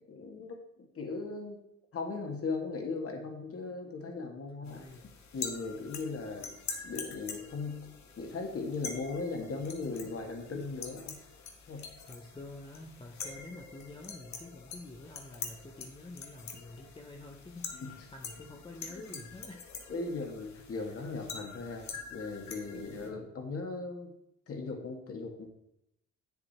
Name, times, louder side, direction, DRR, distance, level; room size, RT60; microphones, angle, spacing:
voice 1, 0.1-1.6 1.9-4.8 5.3-6.5 6.8-7.9 8.2-11.2 11.7-11.9 17.7-17.9 18.9-19.1 19.9-24.1 24.5-25.5, left 3 dB, 50° left, 3 dB, 2.0 m, -38 dB
sound 1, 4.6-23.1, left 5 dB, 65° left, 1.5 m, -45 dB
voice 2, 4.6-5.1 11.6-19.9 20.8-20.9, left 2 dB, 15° left, 2 dB, 0.8 m, -48 dB
8.0 x 7.0 x 4.3 m, 0.80 s
cardioid pair, 90°, 30 cm